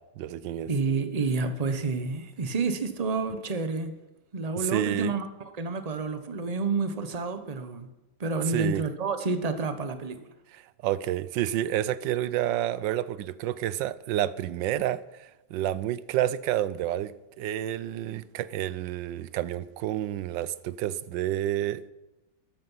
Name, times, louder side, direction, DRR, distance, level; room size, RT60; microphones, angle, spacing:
voice 1, 0.2-0.7 4.6-5.1 8.5-8.8 10.5-21.9, right 12 dB, 75° right, 1.3 m, -29 dB
voice 2, 0.7-3.9 4.3-7.9 8.2-10.2, right 4 dB, 30° right, 0.8 m, -29 dB
14.0 x 12.0 x 5.6 m
omnidirectional pair, 2.1 m